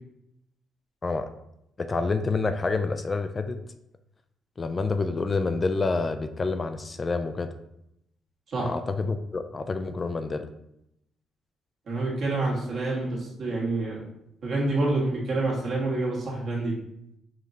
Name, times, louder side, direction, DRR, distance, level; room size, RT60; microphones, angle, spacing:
voice 1, 1.8-3.6 4.6-7.5 8.6-10.5, left 3 dB, 30° left, 8 dB, 0.3 m, -28 dB
voice 2, 11.9-14.0 14.4-16.7, right 2 dB, 60° right, -4 dB, 1.5 m, -27 dB
5.0 x 3.0 x 2.6 m, 0.80 s
cardioid pair, 90°, 0 cm